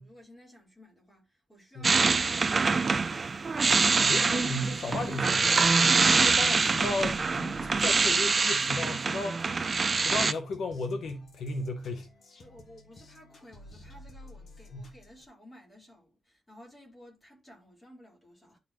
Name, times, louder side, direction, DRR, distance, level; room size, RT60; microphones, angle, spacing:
voice 1, 0.0-3.3 12.4-18.6, left 1 dB, 20° left, 3.9 m, -54 dB
sound 1, 1.8-10.3, right 4 dB, 35° right, 0.3 m, -25 dB
voice 2, 4.0-5.7 6.1-12.1 14.7-14.9, left 2 dB, 85° left, 1.0 m, -35 dB
sound 2, 6.8-15.3, left 2 dB, 55° left, 1.6 m, -53 dB
11.5 x 4.2 x 3.0 m
wide cardioid pair, 160°, 0 cm